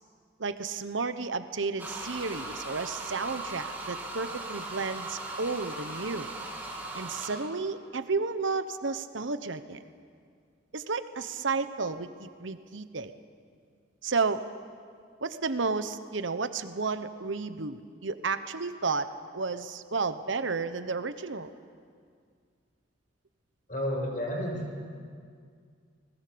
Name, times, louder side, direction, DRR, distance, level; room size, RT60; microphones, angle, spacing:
voice 1, 0.4-6.3 6.9-9.8 10.7-13.1 14.0-14.4 15.2-21.5, right 4 dB, 85° right, 11 dB, 1.1 m, -32 dB
sound 1, 1.8-7.5, right 2 dB, 10° right, 2.9 m, -38 dB
voice 2, 23.7-24.8, equal, 45° left, 0 dB, 6.3 m, -31 dB
30.0 x 20.5 x 7.0 m, 2.1 s
head